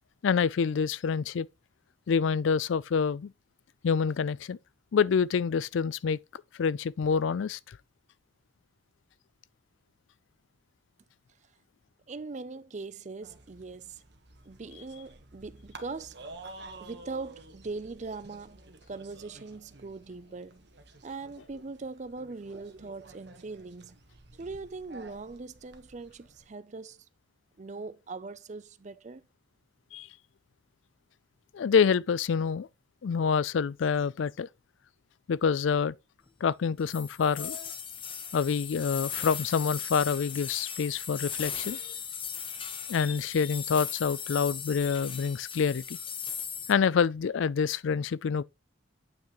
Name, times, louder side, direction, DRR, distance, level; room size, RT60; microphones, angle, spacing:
voice 1, 0.2-1.5 2.1-3.3 3.8-4.6 4.9-6.2 6.6-7.8 29.9-30.1 31.5-32.7 33.0-34.5 35.3-35.9 36.4-37.7 38.3-42.0 42.9-46.0 46.7-48.4, left 6 dB, 70° left, 0.4 m, -27 dB
voice 2, 12.1-14.0 14.5-16.2 16.8-18.6 18.9-20.6 21.0-24.0 24.4-27.1 27.6-29.2, right 3 dB, 35° right, 0.5 m, -41 dB
sound 1, 13.2-26.5, right 2 dB, 55° right, 1.3 m, -51 dB
sound 2, 36.9-46.7, left 7 dB, 25° left, 0.9 m, -38 dB
8.9 x 5.8 x 3.1 m
head